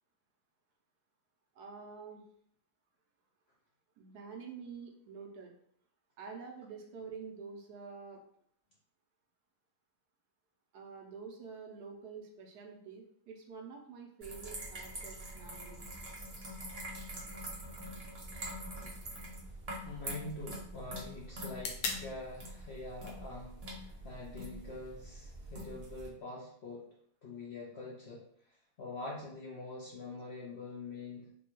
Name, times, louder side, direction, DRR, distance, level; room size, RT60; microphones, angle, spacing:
voice 1, 1.5-2.2 4.0-5.5 6.2-8.2 10.7-15.9, right 5 dB, 75° right, 2 dB, 1.2 m, -48 dB
sound 1, 14.2-26.1, right 1 dB, 40° right, 0.5 m, -45 dB
sound 2, 17.5-25.5, left 4 dB, 80° left, 1.2 m, -47 dB
voice 2, 19.8-26.9 27.2-28.2 28.8-31.3, left 2 dB, 60° left, -4 dB, 0.7 m, -45 dB
4.1 x 2.2 x 3.0 m, 0.66 s
omnidirectional pair, 1.7 m